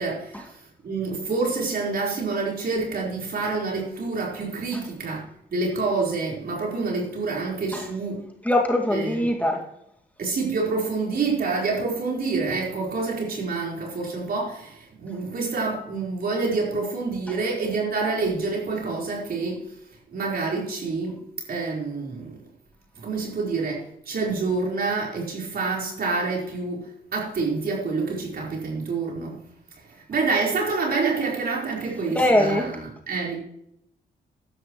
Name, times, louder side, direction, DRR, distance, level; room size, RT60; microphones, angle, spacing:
voice 1, 0.0-5.2 5.5-8.2 8.9-9.3 10.2-19.7 20.1-21.2 21.5-22.4 22.9-29.4 29.9-33.4, right 4 dB, 60° right, 4.4 m, -27 dB
voice 2, 8.4-9.6 32.1-32.7, left 1 dB, 10° left, 2.2 m, -22 dB
14.0 x 11.0 x 3.1 m
supercardioid pair, 60°, 17 cm